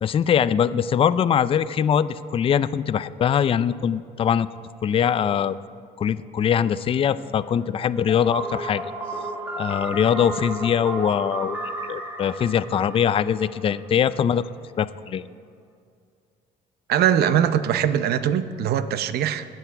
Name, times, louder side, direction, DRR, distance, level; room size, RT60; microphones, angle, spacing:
voice 1, 0.0-4.5 4.8-5.6 6.0-8.8 9.6-11.6 11.9-14.5 14.8-15.3, left 8 dB, 35° left, 15 dB, 0.4 m, -22 dB
Wind instrument woodwind instrument, 6.4-10.3, left 2 dB, 35° right, 2.7 m, -49 dB
sound 1, 8.1-13.9, right 2 dB, 10° right, 1.4 m, -33 dB
voice 2, 16.9-19.5, right 9 dB, 70° right, 12 dB, 0.7 m, -21 dB
20.0 x 8.0 x 4.6 m, 2.3 s
cardioid pair, 110°, 17 cm